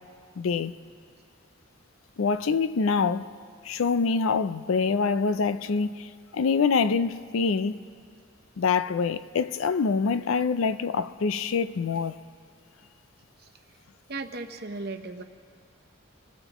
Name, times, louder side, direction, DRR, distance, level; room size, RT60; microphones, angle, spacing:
voice 1, 0.4-0.7 2.2-3.3 3.6-7.8 8.6-12.2, left 5 dB, 80° left, 0.5 m, -25 dB
voice 2, 14.1-15.2, right 3 dB, 50° right, 0.9 m, -36 dB
27.0 x 17.0 x 3.0 m
head